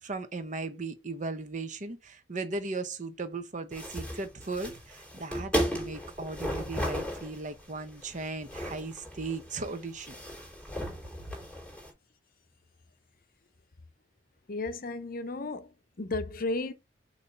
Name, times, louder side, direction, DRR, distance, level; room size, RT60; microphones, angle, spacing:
voice 1, 0.0-10.1 10.8-11.0, right 3 dB, 45° right, 0.9 m, -37 dB
sound 1, 3.7-11.9, equal, 5° left, 3.8 m, -36 dB
voice 2, 14.5-16.7, left 2 dB, 55° left, 0.7 m, -34 dB
6.8 x 3.0 x 5.3 m
head